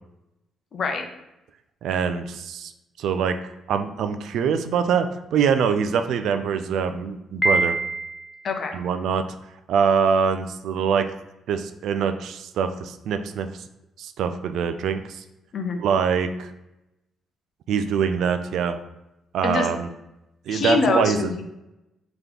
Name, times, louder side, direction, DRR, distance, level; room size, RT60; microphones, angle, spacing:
voice 1, 0.7-1.0 8.4-8.8 15.5-15.8 19.4-19.7 20.5-21.4, left 4 dB, 60° left, 4 dB, 0.6 m, -24 dB
voice 2, 1.8-2.7 3.0-3.4 3.7-7.8 8.7-9.3 9.7-11.1 11.5-13.5 14.0-15.2 15.8-16.5 17.7-18.8 19.3-19.9 20.5-21.3, right 6 dB, 75° right, 9 dB, 0.3 m, -24 dB
Piano, 7.4-8.4, right 2 dB, 15° left, 0.5 m, -24 dB
3.3 x 3.0 x 3.7 m, 0.91 s
supercardioid pair, 55°, 0 cm